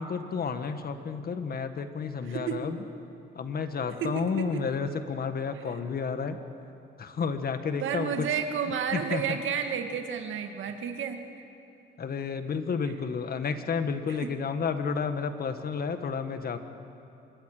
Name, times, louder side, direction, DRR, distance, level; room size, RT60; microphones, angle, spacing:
voice 1, 0.0-2.8 3.4-6.4 7.0-8.3 8.9-9.2 12.0-16.6, left 5 dB, 50° left, 8 dB, 1.7 m, -31 dB
voice 2, 2.2-2.7 4.0-4.6 5.5-5.6 7.8-11.2 14.1-14.3, right 7 dB, 75° right, 5 dB, 2.1 m, -31 dB
26.0 x 22.5 x 6.8 m, 2.7 s
cardioid pair, 90°, 20 cm